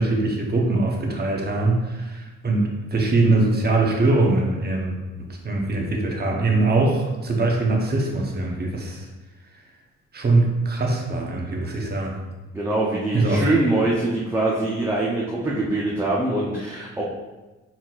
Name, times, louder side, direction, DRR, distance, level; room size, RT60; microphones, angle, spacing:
voice 1, 0.0-9.1 10.1-12.2 13.1-13.4, right 2 dB, 30° right, -1 dB, 0.9 m, -22 dB
voice 2, 12.5-17.0, right 2 dB, 10° right, -6 dB, 0.6 m, -23 dB
4.2 x 4.1 x 2.5 m, 1.1 s
cardioid pair, 90°, 30 cm